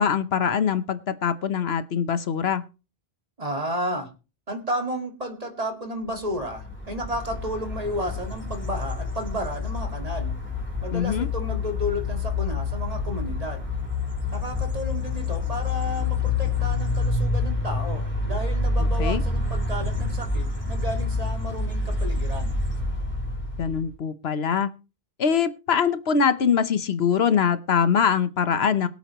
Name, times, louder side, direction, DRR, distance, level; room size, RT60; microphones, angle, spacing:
voice 1, 0.0-2.6 10.9-11.3 18.8-19.2 23.6-24.7 25.2-28.9, left 7 dB, 75° left, 13 dB, 1.2 m, -23 dB
voice 2, 3.4-4.1 4.5-10.4 10.8-13.7 14.3-22.5, equal, 35° right, 5 dB, 2.3 m, -32 dB
sound 1, 6.3-23.9, left 3 dB, 10° left, 3.7 m, -27 dB
23.0 x 8.4 x 3.0 m, 0.31 s
omnidirectional pair, 1.1 m